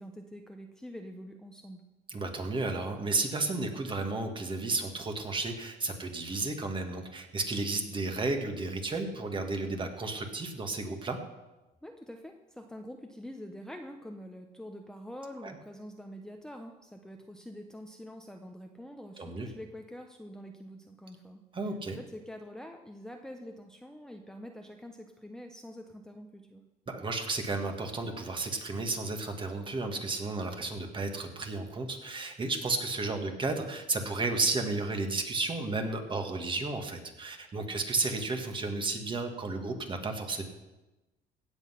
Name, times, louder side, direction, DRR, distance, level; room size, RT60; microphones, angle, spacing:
voice 1, 0.0-1.8 11.8-21.4 21.9-26.6, equal, 5° left, 3 dB, 0.9 m, -46 dB
voice 2, 2.1-11.2 15.4-15.5 19.2-19.5 21.5-22.0 26.9-40.4, right 3 dB, 30° right, 5 dB, 1.9 m, -33 dB
16.0 x 8.0 x 5.8 m, 1.1 s
cardioid pair, 110°, 17 cm